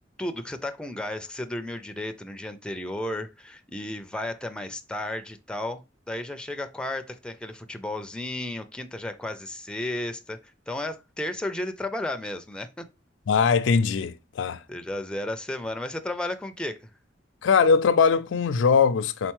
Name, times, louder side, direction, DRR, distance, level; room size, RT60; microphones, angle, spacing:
voice 1, 0.2-5.8 6.1-10.4 10.7-12.9 14.7-16.9, left 1 dB, 5° left, 0.4 m, -33 dB
voice 2, 13.3-14.6 17.4-19.3, left 5 dB, 85° left, 0.4 m, -21 dB
4.4 x 3.9 x 3.0 m
head